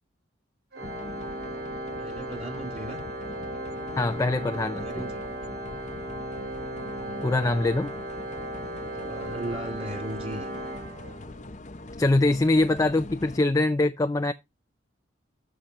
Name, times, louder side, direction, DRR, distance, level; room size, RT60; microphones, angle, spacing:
Organ, 0.7-11.5, right 1 dB, 50° right, 2.2 m, -36 dB
sound 1, 0.8-13.4, left 2 dB, 40° left, 0.7 m, -43 dB
voice 1, 2.0-3.0 4.7-5.3 8.9-10.5, right 1 dB, 30° right, 3.1 m, -37 dB
voice 2, 4.0-4.8 7.2-7.9 12.0-14.3, left 2 dB, 15° left, 0.4 m, -23 dB
13.0 x 4.9 x 2.9 m
head